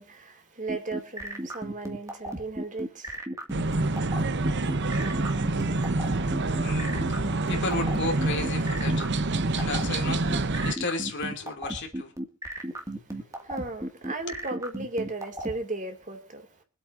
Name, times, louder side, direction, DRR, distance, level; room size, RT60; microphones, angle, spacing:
voice 1, 0.0-3.2 12.6-16.6, right 2 dB, 35° right, 2.4 m, -36 dB
sound 1, 0.7-15.5, right 1 dB, 15° right, 2.1 m, -34 dB
sound 2, 3.5-10.7, right 2 dB, 55° right, 1.0 m, -27 dB
voice 2, 6.6-9.1 9.5-12.1 13.2-13.3, left 3 dB, 55° left, 2.9 m, -33 dB
24.5 x 8.4 x 2.7 m
head